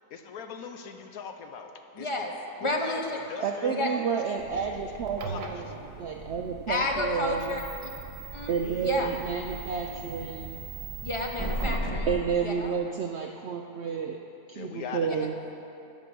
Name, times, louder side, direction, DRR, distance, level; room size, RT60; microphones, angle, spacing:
voice 1, 0.1-2.1 2.6-3.9 4.3-4.6 5.2-6.1 8.6-9.2 14.5-15.3, left 6 dB, 70° left, 6 dB, 1.1 m, -41 dB
voice 2, 1.9-2.3 2.6-3.1 3.6-3.9 6.7-7.9 8.3-9.1 11.0-12.7 15.1-15.2, left 2 dB, 35° left, 1 dB, 0.4 m, -31 dB
voice 3, 3.4-5.7 6.0-7.5 8.5-10.6 12.1-14.2 14.5-15.3, right 6 dB, 70° right, 2 dB, 0.6 m, -30 dB
sound 1, 4.4-12.1, right 1 dB, 15° left, 1.6 m, -39 dB
sound 2, 5.0-12.0, right 6 dB, 85° right, 1.4 m, -43 dB
11.5 x 5.3 x 7.6 m, 2.8 s
omnidirectional pair, 1.7 m